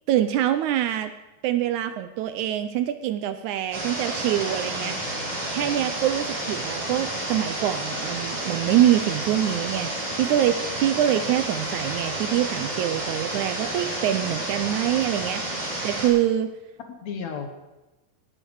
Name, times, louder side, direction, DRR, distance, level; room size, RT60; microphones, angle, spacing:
voice 1, 0.1-1.1 1.4-5.0 5.5-9.9 10.2-16.5, right 12 dB, 75° right, 10 dB, 1.9 m, -25 dB
sound 1, 3.7-16.1, right 1 dB, 45° right, 7.6 m, -30 dB
voice 2, 5.0-5.9 7.9-8.4 16.9-17.5, left 6 dB, 65° left, 5 dB, 2.3 m, -38 dB
17.5 x 12.5 x 4.7 m, 1.0 s
omnidirectional pair, 3.7 m